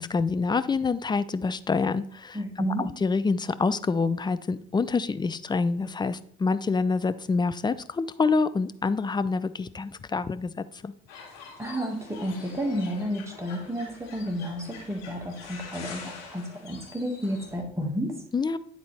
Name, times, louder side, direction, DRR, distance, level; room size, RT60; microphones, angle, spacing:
voice 1, 0.0-10.9 18.3-18.6, left 4 dB, 15° left, 13 dB, 0.3 m, -27 dB
voice 2, 2.3-2.9 11.6-18.1, equal, 10° right, 2 dB, 1.6 m, -31 dB
sound 1, 11.1-17.6, left 5 dB, 60° left, 2.0 m, -45 dB
9.4 x 3.9 x 3.3 m, 0.62 s
hypercardioid pair, 50°, 30 cm